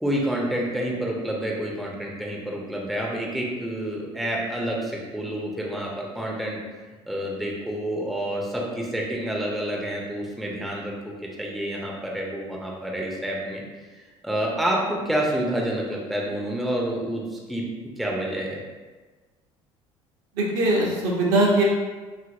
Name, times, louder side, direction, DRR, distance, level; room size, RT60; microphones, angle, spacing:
voice 1, 0.0-6.6 7.1-10.9 11.2-13.6 14.2-17.6 18.0-18.6, right 1 dB, ahead, -3 dB, 0.5 m, -28 dB
voice 2, 20.4-21.6, right 2 dB, 60° right, -3 dB, 0.7 m, -21 dB
2.7 x 2.5 x 2.5 m, 1.3 s
figure-of-eight pair, 60°, 16 cm